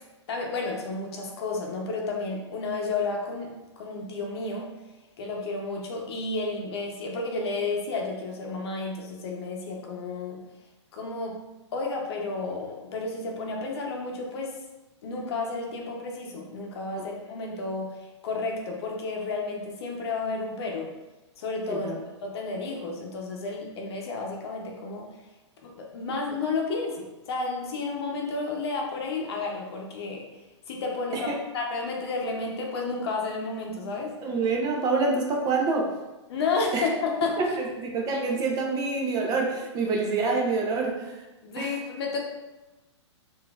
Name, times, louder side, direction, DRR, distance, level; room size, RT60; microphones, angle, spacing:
voice 1, 0.3-4.7 5.2-10.4 10.9-11.4 11.7-14.6 15.0-17.9 18.2-20.9 21.4-21.9 22.2-25.1 25.6-30.2 30.7-34.1 36.3-37.4 41.4-42.2, left 3 dB, 60° left, 0 dB, 0.8 m, -31 dB
voice 2, 34.2-35.9 36.7-36.8 37.4-41.2 41.6-41.7, right 3 dB, 25° right, 0 dB, 0.5 m, -27 dB
3.9 x 2.6 x 2.3 m, 1.1 s
hypercardioid pair, 120°, 15 cm